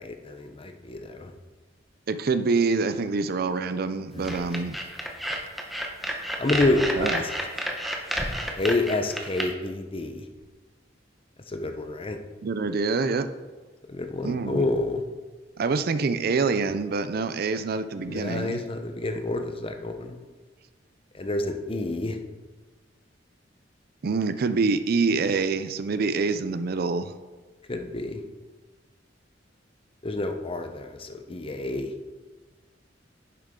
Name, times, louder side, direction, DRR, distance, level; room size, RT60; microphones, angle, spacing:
voice 1, 0.0-1.3 4.1-4.6 6.4-7.3 8.6-10.2 11.5-12.2 13.9-15.0 18.1-20.2 21.1-22.2 27.7-28.2 30.0-31.9, left 2 dB, 30° left, 6 dB, 0.8 m, -28 dB
voice 2, 2.1-4.8 7.0-7.2 12.4-13.3 14.2-14.7 15.6-18.6 24.0-27.1, right 4 dB, 55° right, 11 dB, 0.5 m, -26 dB
sound 1, 4.2-9.4, equal, ahead, 1.0 m, -30 dB
10.5 x 7.2 x 3.7 m, 1.3 s
head